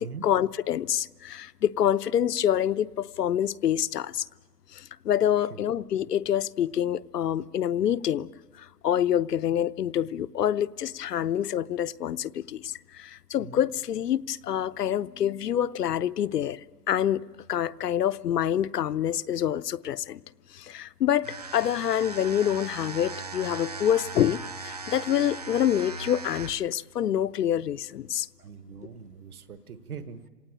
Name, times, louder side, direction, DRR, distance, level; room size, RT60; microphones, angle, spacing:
voice 1, 0.0-4.3 4.7-8.3 8.6-16.6 16.9-20.2 20.5-28.3, left 10 dB, 90° left, 0.7 m, -27 dB
sound 1, 21.2-26.7, right 4 dB, 25° right, 0.7 m, -38 dB
voice 2, 28.4-30.3, right 6 dB, 65° right, 1.4 m, -42 dB
26.5 x 18.5 x 8.9 m
hypercardioid pair, 175°, 47 cm